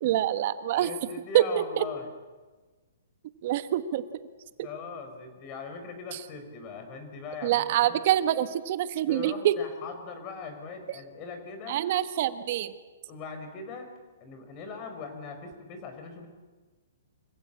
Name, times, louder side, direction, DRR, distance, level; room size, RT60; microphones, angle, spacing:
voice 1, 0.0-0.9 1.3-1.8 3.4-4.0 7.4-9.5 11.7-12.7, right 12 dB, 45° right, 12 dB, 1.3 m, -25 dB
voice 2, 0.7-2.1 4.6-8.0 9.1-11.8 13.1-13.9 14.2-16.3, left 5 dB, 30° left, 7 dB, 4.2 m, -40 dB
25.0 x 15.5 x 8.6 m, 1.3 s
hypercardioid pair, 155°, 0 cm